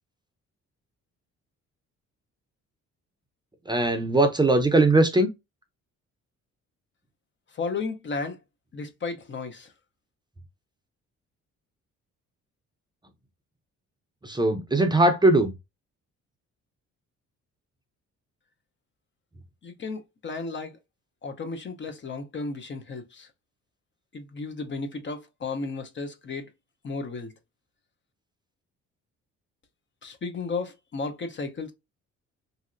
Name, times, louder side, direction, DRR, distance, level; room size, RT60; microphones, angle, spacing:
voice 1, 3.7-5.3 14.2-15.5, right 2 dB, 15° right, 0.6 m, -20 dB
voice 2, 7.5-8.4 8.7-9.7 19.6-20.8 21.2-23.3 24.1-26.5 26.8-27.3 30.0-31.7, left 4 dB, 40° left, 0.7 m, -34 dB
3.0 x 2.7 x 2.4 m
cardioid pair, 90°, 30 cm